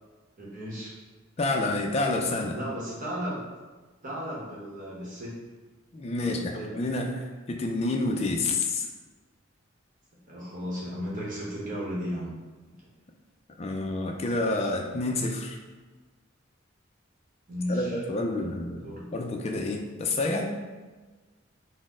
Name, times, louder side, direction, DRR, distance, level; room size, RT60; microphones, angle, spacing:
voice 1, 0.4-0.9 2.5-3.4 4.0-5.4 6.2-6.7 10.3-12.3 17.5-18.0 18.8-19.1, equal, 40° right, -5 dB, 1.0 m, -34 dB
voice 2, 1.4-2.6 5.9-8.9 13.6-15.6 17.7-20.5, left 2 dB, 30° left, 2 dB, 0.3 m, -29 dB
4.1 x 2.0 x 3.6 m, 1.3 s
head